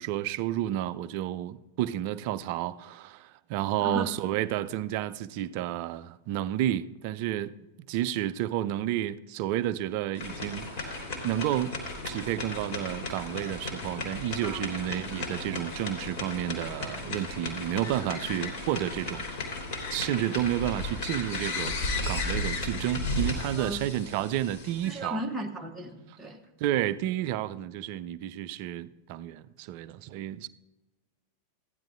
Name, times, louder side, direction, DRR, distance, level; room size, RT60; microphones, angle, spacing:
voice 1, 0.0-11.8 12.0-19.2 19.9-21.8 22.1-25.2 26.6-30.5, right 12 dB, 45° right, 0.4 m, -31 dB
voice 2, 3.8-4.2 14.4-14.7 23.6-23.8 24.8-26.5, right 1 dB, 5° right, 1.0 m, -36 dB
sound 1, 10.1-25.0, left 2 dB, 50° left, 3.0 m, -35 dB
15.0 x 10.5 x 2.5 m
figure-of-eight pair, 90°, 0 cm